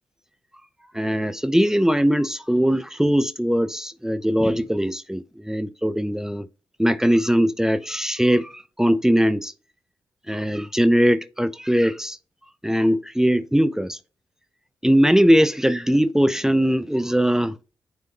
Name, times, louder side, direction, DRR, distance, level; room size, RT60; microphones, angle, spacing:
voice 1, 0.9-6.5 6.8-9.5 10.3-12.2 12.6-14.0 14.8-17.6, equal, 5° right, 0.7 m, -20 dB
9.4 x 3.5 x 2.8 m
supercardioid pair, 40°, 9 cm